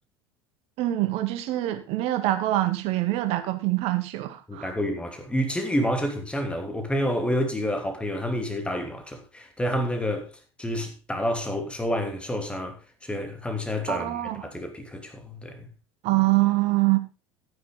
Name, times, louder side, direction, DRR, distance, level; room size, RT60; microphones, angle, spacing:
voice 1, 0.8-4.7 13.9-14.5 16.0-17.0, right 17 dB, 50° right, 1.9 m, -25 dB
voice 2, 4.5-10.3 10.6-15.7, equal, 10° left, 3.0 m, -29 dB
13.0 x 9.4 x 3.9 m
figure-of-eight pair, 75°, 13 cm